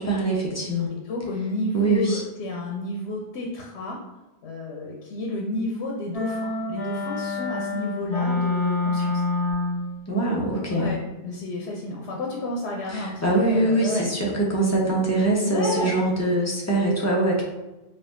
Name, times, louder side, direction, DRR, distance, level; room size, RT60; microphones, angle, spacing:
voice 1, 0.0-0.9 1.7-2.2 10.1-10.9 12.9-17.4, right 2 dB, 20° left, -3 dB, 0.6 m, -23 dB
voice 2, 0.9-4.0 4.4-9.2 10.7-14.1 15.5-16.0, left 2 dB, 85° left, -1 dB, 0.8 m, -31 dB
sound 1, 6.1-10.0, left 3 dB, 60° left, 1.2 m, -26 dB
4.2 x 2.4 x 2.5 m, 1.0 s
omnidirectional pair, 1.1 m